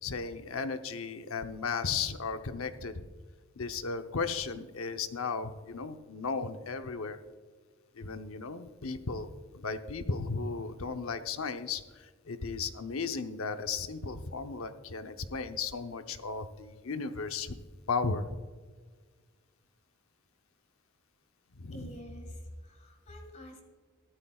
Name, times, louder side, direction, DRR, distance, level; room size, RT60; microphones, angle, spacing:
voice 1, 0.0-3.1 3.6-7.2 8.0-11.8 12.3-17.5 17.9-18.2 21.6-21.9, left 4 dB, 80° left, 8 dB, 0.8 m, -35 dB
voice 2, 21.7-23.6, equal, 35° left, 3 dB, 1.8 m, -46 dB
14.5 x 12.5 x 2.4 m, 1.5 s
head